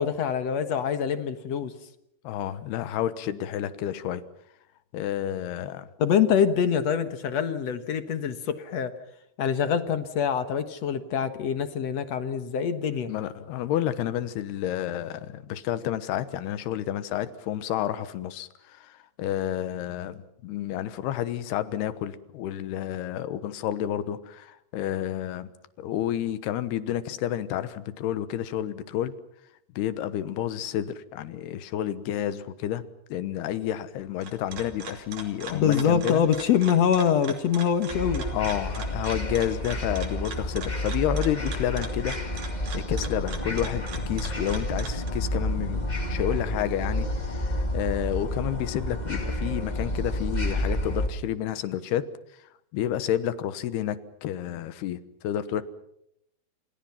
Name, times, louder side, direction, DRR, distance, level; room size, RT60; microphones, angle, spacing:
voice 1, 0.0-1.7 6.0-8.9 9.4-13.1 35.5-38.2, left 8 dB, 60° left, 9 dB, 1.9 m, -25 dB
voice 2, 2.2-4.2 4.9-5.9 13.1-25.5 25.8-29.1 29.8-32.8 33.1-36.2 38.3-42.2 42.7-52.1 52.7-55.6, left 11 dB, 80° left, 13 dB, 3.2 m, -30 dB
sound 1, 34.0-45.1, right 5 dB, 50° right, 3.9 m, -41 dB
sound 2, 37.9-51.1, left 1 dB, 20° left, 1.1 m, -30 dB
29.0 x 27.5 x 5.8 m, 0.76 s
omnidirectional pair, 4.6 m